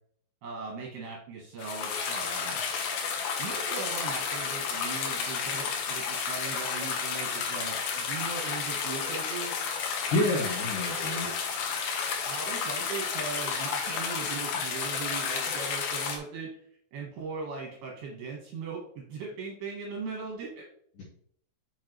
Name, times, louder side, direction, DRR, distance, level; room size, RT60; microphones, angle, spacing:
voice 1, 0.4-2.7 3.4-9.6 12.3-16.5 16.9-20.7, right 4 dB, 75° right, -1 dB, 2.6 m, -39 dB
sound 1, 1.6-16.2, left 6 dB, 85° left, 2.1 m, -32 dB
voice 2, 10.1-11.5 21.0-21.1, left 1 dB, 65° left, -6 dB, 2.2 m, -29 dB
7.4 x 6.1 x 3.0 m, 0.65 s
omnidirectional pair, 5.8 m